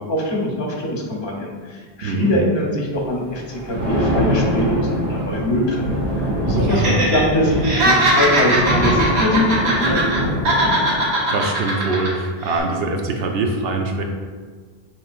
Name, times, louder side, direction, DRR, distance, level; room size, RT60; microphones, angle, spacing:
voice 1, 0.0-6.0 6.5-10.1 10.5-10.6, left 1 dB, 55° left, -1 dB, 1.1 m, -22 dB
voice 2, 2.0-2.3 6.5-7.1 7.6-7.7 11.3-14.0, right 3 dB, 70° right, 3 dB, 0.8 m, -23 dB
Thunder, 3.4-11.1, equal, 40° right, 1.2 m, -24 dB
Laughter, 6.7-7.2 7.5-10.2 10.4-12.1 12.4-12.6, right 1 dB, 85° right, 1.3 m, -19 dB
7.1 x 3.0 x 2.4 m, 1.5 s
omnidirectional pair, 1.1 m